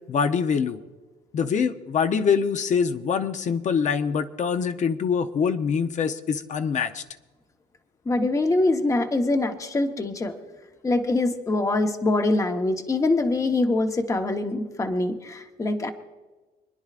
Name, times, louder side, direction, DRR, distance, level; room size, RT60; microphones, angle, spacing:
voice 1, 0.1-0.8 1.3-7.0, left 6 dB, 45° left, 8 dB, 0.8 m, -24 dB
voice 2, 8.1-10.3 10.8-15.9, left 2 dB, 20° left, 5 dB, 1.0 m, -24 dB
26.5 x 10.5 x 2.5 m, 1.3 s
cardioid pair, 110°, 17 cm